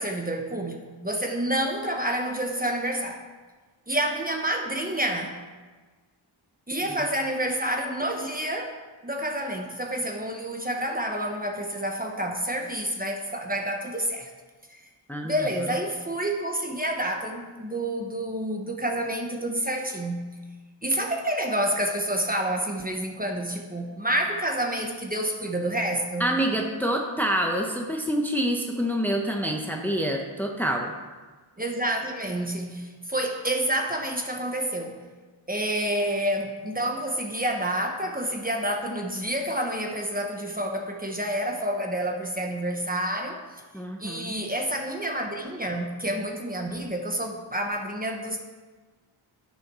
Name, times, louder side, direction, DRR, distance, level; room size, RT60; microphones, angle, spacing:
voice 1, 0.0-3.2 3.9-5.4 6.7-8.8 9.0-14.3 14.7-14.8 15.2-20.4 20.8-26.4 31.6-35.0 35.5-43.4 44.0-48.4, right 1 dB, 20° right, 2 dB, 1.2 m, -28 dB
voice 2, 26.2-30.9 43.7-44.3, equal, 5° left, 1 dB, 1.1 m, -27 dB
11.5 x 6.7 x 6.2 m, 1.4 s
wide cardioid pair, 105°, 48 cm